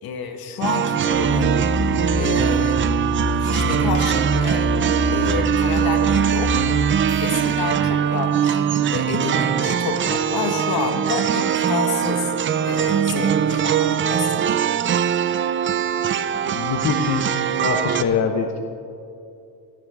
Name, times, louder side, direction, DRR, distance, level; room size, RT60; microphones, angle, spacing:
voice 1, 0.0-1.6 2.1-2.9 3.4-4.7 5.1-6.6 7.2-12.3 12.6-14.6, left 6 dB, 65° left, 5 dB, 1.6 m, -29 dB
sound 1, 0.6-18.0, right 9 dB, 30° right, 0.4 m, -21 dB
sound 2, 1.1-6.9, left 4 dB, 10° left, 1.6 m, -27 dB
sound 3, 6.9-8.5, right 1 dB, 10° right, 1.5 m, -43 dB
voice 2, 16.3-17.3 17.6-18.6, left 6 dB, 40° left, 4 dB, 0.9 m, -24 dB
20.0 x 11.0 x 3.6 m, 2.6 s
cardioid pair, 140°, 39 cm